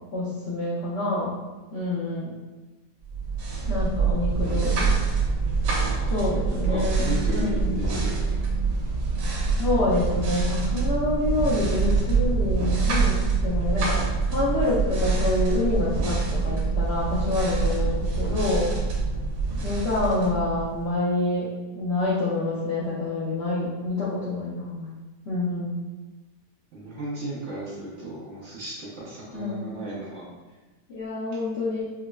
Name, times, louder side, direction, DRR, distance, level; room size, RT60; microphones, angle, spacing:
voice 1, 0.1-1.4 1.7-2.3 3.7-5.0 6.1-7.7 9.6-14.0 14.3-18.7 19.6-24.9 25.3-25.8 29.3-29.7 30.9-31.9, left 2 dB, 70° left, -9 dB, 0.6 m, -27 dB
sound 1, 3.1-20.9, right 4 dB, 85° right, 1.3 m, -25 dB
voice 2, 5.8-6.3 6.7-8.4 17.5-18.0 26.7-30.3, right 2 dB, 60° right, -6 dB, 0.8 m, -35 dB
4.6 x 2.0 x 2.2 m, 1.2 s
omnidirectional pair, 1.8 m